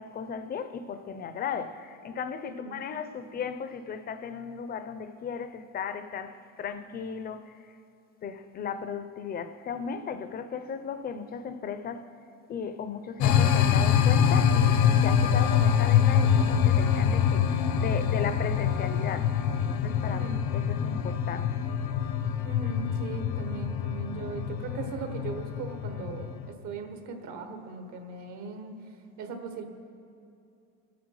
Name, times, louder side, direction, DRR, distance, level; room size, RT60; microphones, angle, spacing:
voice 1, 0.0-7.6 8.2-12.1 12.5-21.6, left 6 dB, 30° left, 0.6 m, -36 dB
voice 2, 2.4-3.0 20.1-20.5 22.4-28.7 29.2-29.7, right 4 dB, 65° right, 1.5 m, -39 dB
sound 1, 13.2-26.5, left 8 dB, 70° left, 1.0 m, -25 dB
23.5 x 9.3 x 4.8 m
cardioid pair, 155°, 31 cm